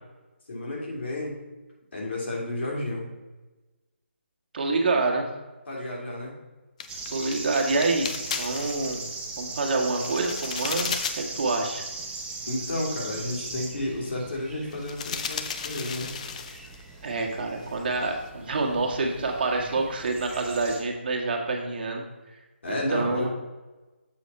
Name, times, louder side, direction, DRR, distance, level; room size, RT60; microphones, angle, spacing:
voice 1, 0.5-1.4 1.9-3.1 5.7-6.4 12.5-16.1 22.6-23.3, left 1 dB, 65° left, -3 dB, 2.6 m, -31 dB
voice 2, 4.5-5.3 7.1-9.0 9.4-11.8 17.0-22.0 22.9-23.3, right 3 dB, 50° right, 1 dB, 1.4 m, -27 dB
sound 1, 6.8-9.2 9.6-11.4 11.7-11.8 12.2-12.3 13.0-13.4 14.7-16.8 17.1-17.4 17.6-18.1, left 6 dB, 35° left, 0.5 m, -35 dB
sound 2, 6.9-20.8, right 3 dB, 10° right, 0.9 m, -39 dB
7.1 x 4.1 x 5.4 m, 1.2 s
figure-of-eight pair, 150°, 7 cm